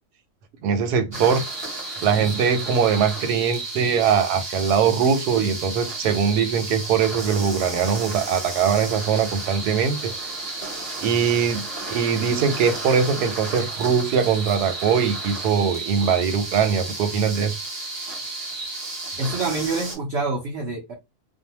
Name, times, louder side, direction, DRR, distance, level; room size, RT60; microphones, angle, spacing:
voice 1, 0.6-1.4 2.0-10.1 11.0-17.6, right 7 dB, 85° right, 1.1 m, -21 dB
sound 1, 1.1-20.0, right 2 dB, 25° right, 0.6 m, -32 dB
voice 2, 19.2-20.9, right 3 dB, 65° right, 0.7 m, -26 dB
2.6 x 2.1 x 2.8 m
omnidirectional pair, 1.7 m